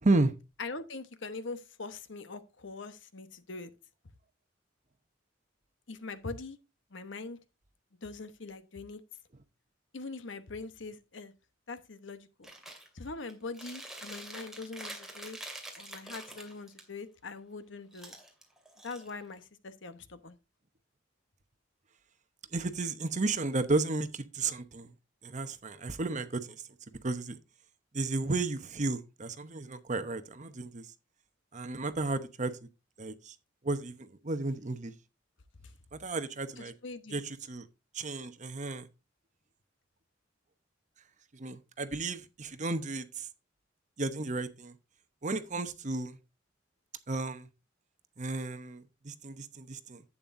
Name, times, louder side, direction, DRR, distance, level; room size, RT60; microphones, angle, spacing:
voice 1, 0.0-0.3 22.5-24.9 25.2-26.6 27.0-27.4 27.9-30.9 31.5-32.5 33.0-33.3 33.6-34.9 35.9-36.7 37.1-37.7 37.9-38.9 41.3-43.3 44.0-44.7 45.2-46.2 47.1-47.5 48.2-50.0, right 3 dB, 40° right, 0.9 m, -33 dB
voice 2, 0.6-3.7 5.9-6.6 6.9-7.4 8.0-9.0 9.9-11.3 11.7-12.5 12.9-15.4 15.8-18.2 18.8-20.4 35.6-35.7 36.6-37.2, left 3 dB, 70° left, 1.1 m, -42 dB
Chewing mastication, 12.4-12.9 13.3-16.8 17.9-19.4, right 1 dB, ahead, 2.4 m, -46 dB
11.0 x 8.7 x 2.6 m
head